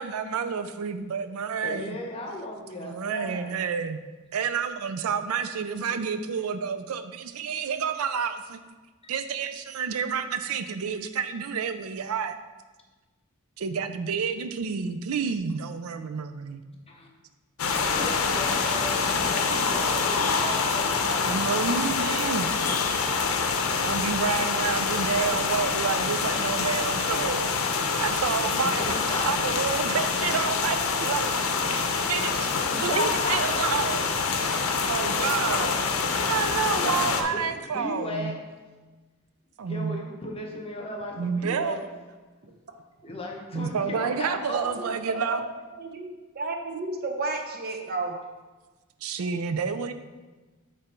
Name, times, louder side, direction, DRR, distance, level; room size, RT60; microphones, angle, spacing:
voice 1, 0.0-2.0 2.8-4.0 4.3-8.6 9.1-12.4 13.6-16.6 21.2-22.5 23.8-27.5 27.9-34.1 34.9-35.8 36.1-38.4 39.6-40.0 41.2-41.9 43.5-45.4 49.0-49.9, right 6 dB, 80° right, 10 dB, 0.4 m, -29 dB
voice 2, 1.6-3.5 16.9-17.1 17.6-21.5 28.6-29.5 32.7-33.8 35.1-35.5 36.7-38.4 39.7-41.8 43.0-44.6, left 2 dB, 25° left, 1 dB, 0.9 m, -36 dB
sound 1, 17.6-37.2, left 5 dB, 75° left, 0.6 m, -26 dB
voice 3, 45.8-48.2, right 3 dB, 45° right, 3 dB, 0.8 m, -32 dB
8.8 x 3.4 x 4.3 m, 1.3 s
head